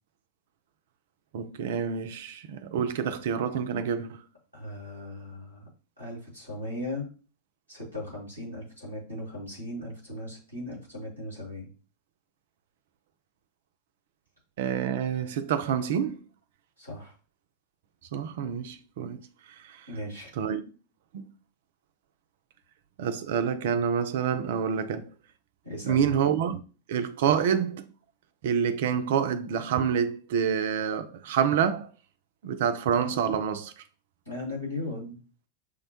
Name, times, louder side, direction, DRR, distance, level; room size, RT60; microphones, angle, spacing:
voice 1, 1.3-4.2 14.6-16.2 18.1-19.2 19.6-19.9 20.4-20.6 21.1-21.2 23.0-25.1 25.8-26.6 26.9-27.8 28.4-31.9 32.4-33.7, right 7 dB, 55° right, 0.4 m, -27 dB
voice 2, 4.5-5.7 6.0-7.1 7.7-11.7 16.8-17.1 19.9-20.3 25.6-26.2 34.3-35.2, left 1 dB, 90° left, 2.0 m, -37 dB
6.4 x 2.1 x 2.7 m
figure-of-eight pair, 90°, 0 cm